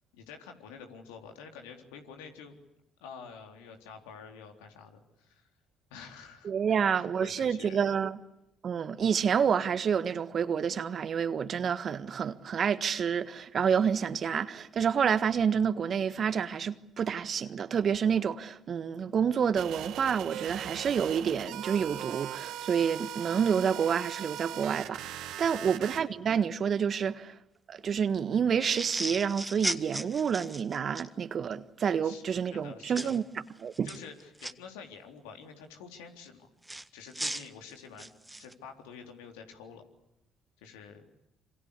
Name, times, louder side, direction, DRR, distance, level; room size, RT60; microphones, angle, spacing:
voice 1, 0.1-2.6 3.0-5.5 5.9-7.8 25.4-25.8 32.0-32.2 32.5-33.2 33.8-36.5 36.9-38.1 38.4-39.8 40.6-41.1, left 6 dB, 85° left, 3.7 m, -48 dB
voice 2, 6.4-8.2 8.6-27.3 27.7-33.2 33.6-33.9, right 7 dB, 50° right, 1.5 m, -28 dB
sound 1, 19.6-26.0, right 11 dB, 70° right, 1.9 m, -39 dB
sound 2, 28.6-31.1 33.0-33.2 33.7-34.5 36.7-38.5, right 1 dB, 10° right, 1.7 m, -36 dB
27.0 x 26.0 x 8.4 m
hypercardioid pair, 60°, 0 cm